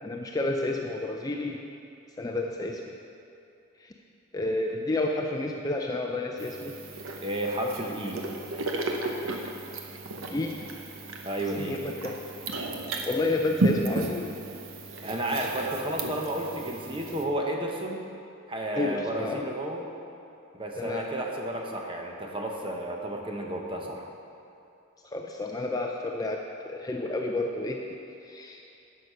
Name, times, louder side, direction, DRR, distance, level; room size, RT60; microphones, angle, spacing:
voice 1, 0.0-1.6 2.2-2.9 3.8-3.9 4.3-6.8 10.3-10.6 11.6-12.2 13.1-14.3 18.7-19.4 20.8-21.1 25.1-28.6, left 2 dB, 15° left, 1 dB, 0.4 m, -30 dB
sound 1, 6.4-17.2, right 2 dB, 65° right, 0.9 m, -34 dB
voice 2, 7.2-8.2 11.2-11.8 15.0-18.0 18.5-19.9 20.5-24.0, right 1 dB, 25° right, 1 dB, 0.9 m, -32 dB
11.0 x 6.5 x 5.5 m, 2.7 s
head